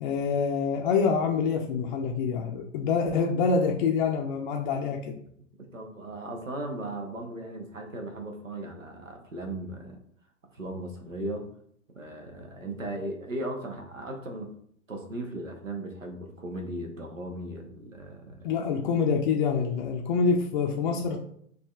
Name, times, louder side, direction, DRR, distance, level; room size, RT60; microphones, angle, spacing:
voice 1, 0.0-5.1 18.4-21.2, left 5 dB, 40° left, 1 dB, 0.4 m, -26 dB
voice 2, 5.6-10.0 10.5-11.5 11.9-14.5 14.9-18.5, right 1 dB, 90° right, 3 dB, 0.7 m, -37 dB
4.7 x 2.4 x 2.3 m, 0.66 s
figure-of-eight pair, 95°, 38 cm